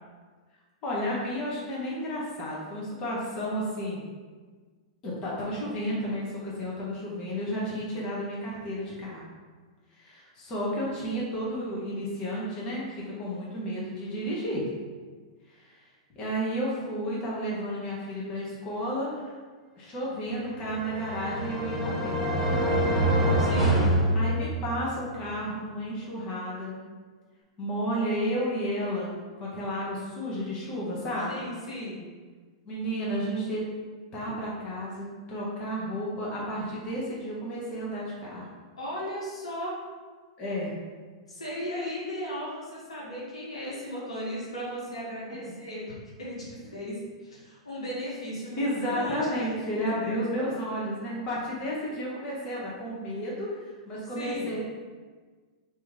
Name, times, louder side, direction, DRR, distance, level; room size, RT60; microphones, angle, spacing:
voice 1, 0.8-4.0 5.0-9.2 10.0-14.6 15.6-15.7 16.1-19.3 19.8-22.2 24.1-26.8 27.6-31.5 32.7-33.6 34.1-38.5 40.4-40.8 48.6-54.6, equal, 30° left, -6 dB, 1.1 m, -32 dB
sound 1, 20.5-24.9, right 1 dB, 5° left, 1.0 m, -25 dB
voice 2, 23.4-23.9 31.3-32.0 38.8-39.8 41.3-45.9 46.2-49.5 49.8-50.1 54.1-54.5, equal, 85° left, -6 dB, 1.3 m, -36 dB
3.1 x 3.0 x 3.7 m, 1.5 s
hypercardioid pair, 105°, 3 cm